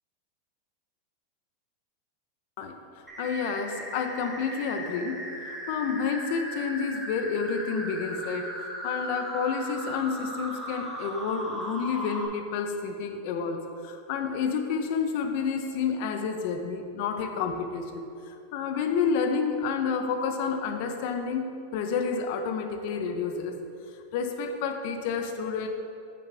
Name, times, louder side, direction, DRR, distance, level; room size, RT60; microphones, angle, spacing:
voice 1, 2.6-5.2 5.7-23.6 24.1-25.7, left 5 dB, 45° left, 6 dB, 0.5 m, -30 dB
sound 1, 3.1-12.2, right 1 dB, 5° right, 0.9 m, -37 dB
8.5 x 6.8 x 3.3 m, 2.7 s
supercardioid pair, 170°, 0 cm